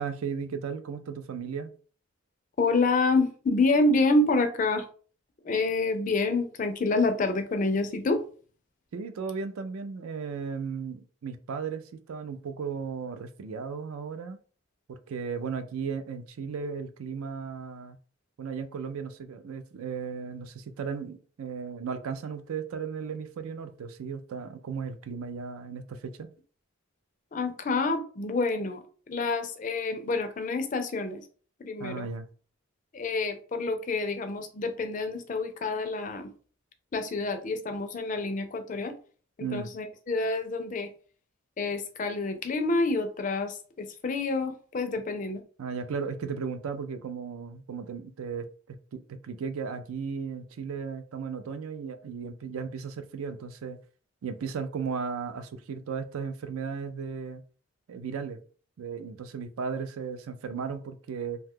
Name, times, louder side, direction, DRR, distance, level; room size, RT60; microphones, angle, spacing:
voice 1, 0.0-1.7 8.9-14.4 14.9-18.0 18.4-26.3 31.8-32.3 39.4-39.7 45.6-53.8 54.2-57.4 57.9-58.4 58.8-61.4, right 6 dB, 80° right, 0.4 m, -35 dB
voice 2, 2.6-4.9 5.4-8.2 27.3-31.2 31.6-32.1 32.9-36.3 36.9-38.9 39.4-40.9 41.6-45.4, left 3 dB, 35° left, 0.4 m, -28 dB
2.7 x 2.2 x 3.5 m
head